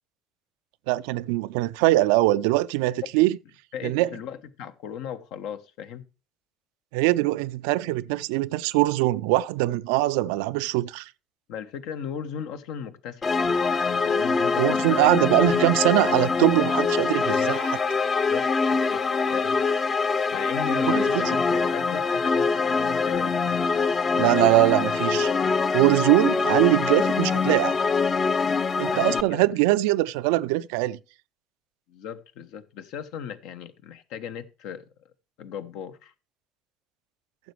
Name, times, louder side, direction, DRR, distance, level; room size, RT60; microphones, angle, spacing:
voice 1, 0.9-3.4 3.8-4.1 6.9-11.1 14.6-17.8 20.9-21.4 24.2-25.3 25.7-27.8 28.8-31.0, right 18 dB, 70° right, 0.4 m, -22 dB
voice 2, 3.7-6.0 11.5-13.4 14.0-15.1 18.3-19.0 19.3-19.6 20.3-23.3 28.8-29.5 31.9-34.9 35.4-36.1, left 8 dB, 65° left, 1.0 m, -37 dB
sound 1, 13.2-29.2, left 4 dB, 35° left, 0.7 m, -24 dB
14.5 x 7.2 x 3.2 m
hypercardioid pair, 60°, 0 cm